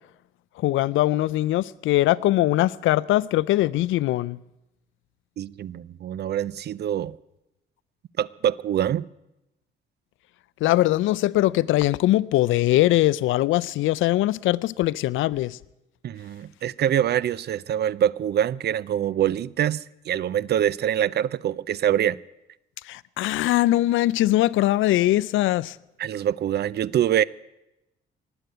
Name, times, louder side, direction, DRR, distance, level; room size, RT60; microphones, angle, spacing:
voice 1, 0.6-4.4 10.6-15.6 22.8-25.8, left 15 dB, 80° left, 0.5 m, -21 dB
voice 2, 5.4-7.2 8.2-9.1 16.0-22.2 26.0-27.2, right 10 dB, 55° right, 0.5 m, -25 dB
19.0 x 8.0 x 9.2 m
cardioid pair, 90°, 20 cm